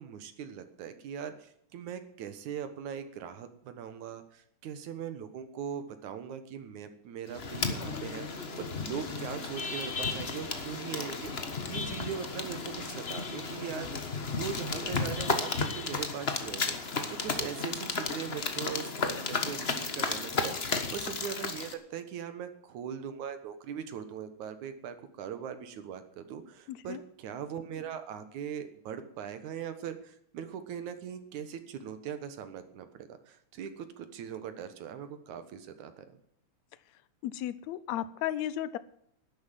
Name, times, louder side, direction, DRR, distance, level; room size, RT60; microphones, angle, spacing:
voice 1, 0.0-36.0, right 8 dB, 75° right, 10 dB, 2.8 m, -40 dB
sound 1, 7.3-21.7, left 4 dB, 45° left, 0.8 m, -34 dB
voice 2, 26.7-27.0 37.2-38.8, left 12 dB, 75° left, 16 dB, 2.0 m, -34 dB
12.0 x 10.5 x 7.6 m, 0.68 s
omnidirectional pair, 3.4 m